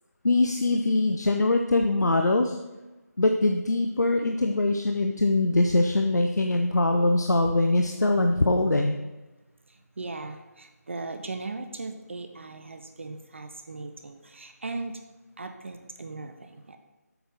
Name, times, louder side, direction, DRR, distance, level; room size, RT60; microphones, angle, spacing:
voice 1, 0.2-2.6 3.2-9.0, left 2 dB, 80° left, 3 dB, 0.6 m, -23 dB
voice 2, 9.7-14.9 15.4-16.8, right 3 dB, 45° right, 7 dB, 0.6 m, -38 dB
7.9 x 4.3 x 5.0 m, 1.1 s
figure-of-eight pair, 160°, 9 cm